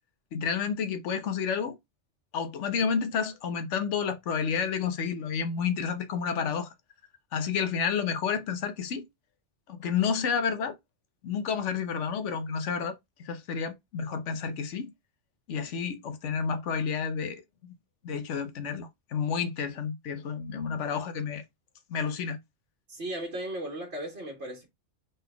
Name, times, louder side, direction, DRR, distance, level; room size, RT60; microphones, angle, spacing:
voice 1, 0.3-1.8 2.3-6.7 7.3-9.0 9.7-10.8 11.2-14.9 15.5-17.7 18.0-21.4 21.9-22.4, left 6 dB, 90° left, 1.1 m, -30 dB
voice 2, 22.9-24.7, right 1 dB, 60° right, 1.5 m, -36 dB
4.0 x 3.8 x 3.4 m
omnidirectional pair, 1.2 m